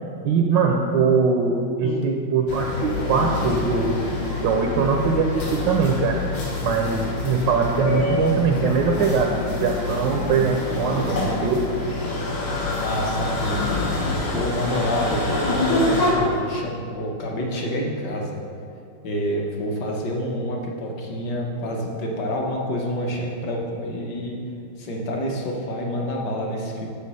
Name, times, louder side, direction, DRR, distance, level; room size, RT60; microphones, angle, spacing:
voice 1, 0.2-6.2 6.6-11.6, right 5 dB, 70° right, 2 dB, 1.2 m, -22 dB
sound 1, 2.5-16.1, left 2 dB, 85° left, 2.3 m, -26 dB
voice 2, 12.7-18.4 19.0-24.4 24.8-26.9, equal, 60° left, 0 dB, 1.6 m, -28 dB
6.8 x 6.3 x 5.5 m, 2.4 s
omnidirectional pair, 2.2 m